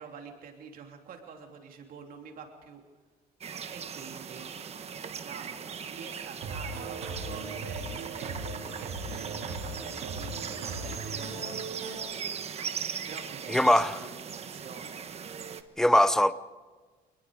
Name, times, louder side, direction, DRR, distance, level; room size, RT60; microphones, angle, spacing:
voice 1, 0.0-2.8 3.7-4.5 5.2-15.1, right 6 dB, 60° right, 3.2 m, -47 dB
sound 1, 3.4-15.6, right 7 dB, 40° right, 1.3 m, -39 dB
sound 2, 6.4-12.0, right 2 dB, 85° right, 5.2 m, -39 dB
voice 2, 13.5-14.0 15.8-16.3, left 1 dB, 5° left, 0.7 m, -21 dB
26.5 x 20.0 x 5.0 m
cardioid pair, 135°, 16 cm